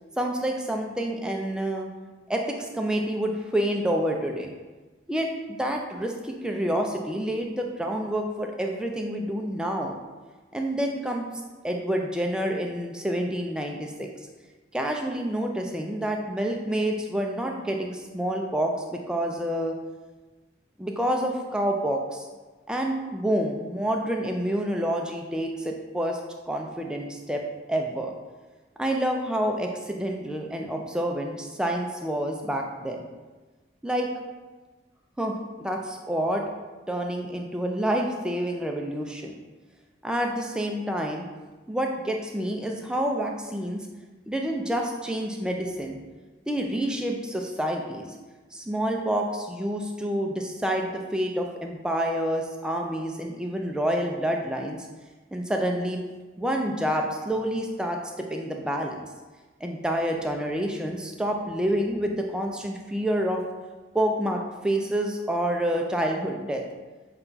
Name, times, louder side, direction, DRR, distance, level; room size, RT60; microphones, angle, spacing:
voice 1, 0.2-1.9 2.3-4.5 5.1-10.0 10.5-11.2 11.6-14.1 14.7-18.7 19.1-19.8 20.8-22.3 22.7-26.2 26.5-27.4 27.7-28.2 28.8-33.0 33.8-34.1 35.2-36.5 36.9-39.3 40.0-41.3 41.7-43.8 44.3-46.0 46.5-48.1 48.5-54.8 55.3-56.0 56.4-58.0 58.3-59.0 59.6-63.4 63.9-66.6, right 1 dB, 5° right, 1 dB, 0.3 m, -28 dB
5.4 x 2.3 x 3.8 m, 1.3 s
head